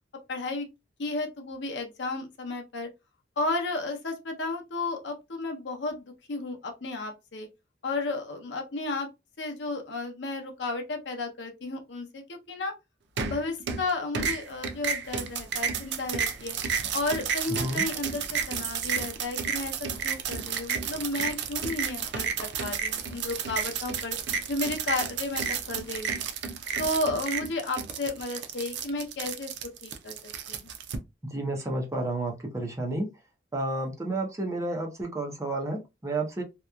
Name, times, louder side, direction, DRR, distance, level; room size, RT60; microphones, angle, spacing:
voice 1, 0.3-0.7 1.0-2.9 3.4-7.5 7.8-9.1 9.4-12.7 13.3-16.6 16.9-24.2 24.5-26.2 26.8-29.5 29.8-30.2 30.5-30.7, left 2 dB, 70° left, 0.7 m, -33 dB
sound 1, 13.2-13.9 14.1-31.0, right 6 dB, 65° right, 0.5 m, -32 dB
voice 2, 31.2-33.1 33.5-36.4, right 2 dB, 15° right, 0.6 m, -31 dB
2.9 x 2.3 x 2.2 m
head